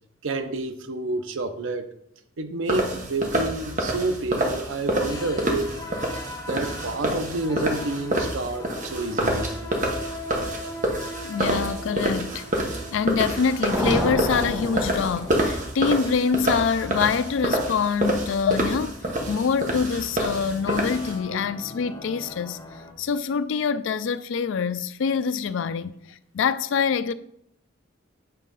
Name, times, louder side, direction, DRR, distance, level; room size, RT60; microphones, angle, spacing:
voice 1, 0.2-1.9 2.4-5.7 6.5-9.5, right 2 dB, 80° right, 0.7 m, -29 dB
sound 1, 2.7-21.2, right 1 dB, 40° right, 1.1 m, -27 dB
sound 2, 4.9-22.9, left 1 dB, 20° left, 0.7 m, -41 dB
voice 2, 11.2-12.4 12.9-19.0 19.3-22.6 23.0-27.1, left 6 dB, 75° left, 0.4 m, -25 dB
sound 3, 13.7-15.9, equal, 10° right, 1.0 m, -28 dB
8.3 x 3.6 x 5.4 m
head